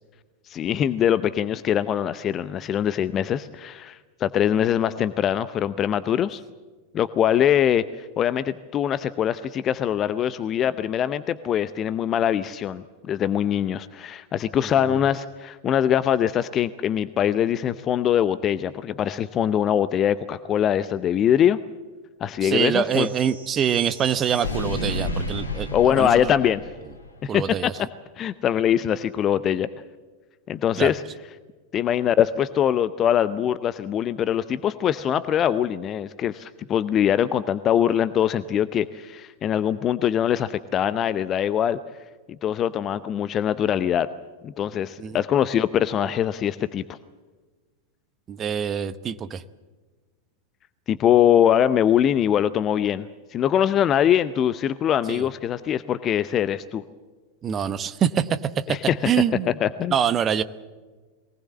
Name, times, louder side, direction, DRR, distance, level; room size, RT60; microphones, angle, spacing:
voice 1, 0.5-6.4 6.9-21.6 22.2-23.1 25.7-26.6 27.2-27.7 28.2-29.7 30.5-31.0 31.7-41.8 42.4-44.1 44.4-47.0 50.9-56.8 58.7-59.1 59.6-59.9, left 10 dB, 30° left, 0.7 m, -23 dB
voice 2, 22.4-26.3 27.3-27.7 30.8-30.9 45.0-45.2 48.3-49.4 55.1-55.2 57.4-58.3 58.7-58.8 59.0-59.6 59.9-60.4, right 8 dB, 25° right, 1.0 m, -25 dB
sound 1, 22.9-27.2, left 1 dB, 75° left, 2.7 m, -32 dB
22.0 x 19.0 x 7.4 m
figure-of-eight pair, 90°, 0 cm